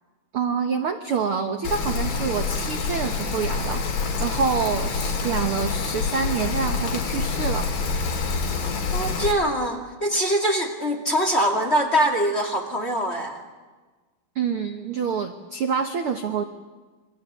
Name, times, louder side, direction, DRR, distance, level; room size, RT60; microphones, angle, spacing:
voice 1, 0.3-7.8 14.3-16.4, right 6 dB, 75° right, 7 dB, 1.2 m, -27 dB
Rain, 1.6-9.3, left 4 dB, 60° left, 4.5 m, -26 dB
voice 2, 8.9-13.4, equal, 20° left, 5 dB, 1.9 m, -23 dB
27.5 x 22.5 x 8.2 m, 1.3 s
omnidirectional pair, 4.2 m